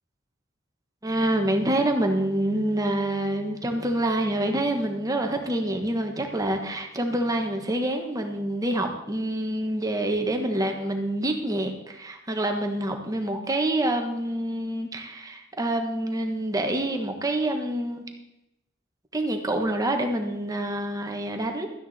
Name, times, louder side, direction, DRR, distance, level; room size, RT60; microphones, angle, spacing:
voice 1, 1.0-18.0 19.1-21.7, right 1 dB, 20° right, 4 dB, 1.3 m, -27 dB
13.0 x 9.6 x 4.2 m, 0.89 s
head